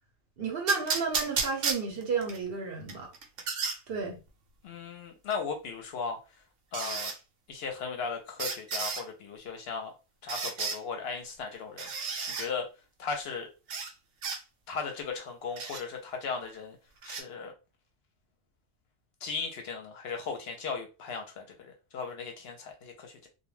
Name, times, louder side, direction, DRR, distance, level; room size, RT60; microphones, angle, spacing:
voice 1, 0.4-3.1 3.9-4.2, right 4 dB, 60° right, 0.8 m, -32 dB
sound 1, 0.7-2.4 2.9-3.8 5.3-5.4 6.7-7.2 8.4-9.0 10.3-10.8 11.8-12.5 13.7-13.9 14.2-14.4 15.6-15.8 17.0-17.2, right 5 dB, 85° right, 0.9 m, -32 dB
voice 2, 4.6-6.2 6.7-7.1 7.5-9.9 10.2-12.7 13.0-13.5 14.7-16.8 17.0-17.5 19.2-23.3, left 5 dB, 65° left, 0.7 m, -37 dB
2.2 x 2.2 x 3.1 m
omnidirectional pair, 1.2 m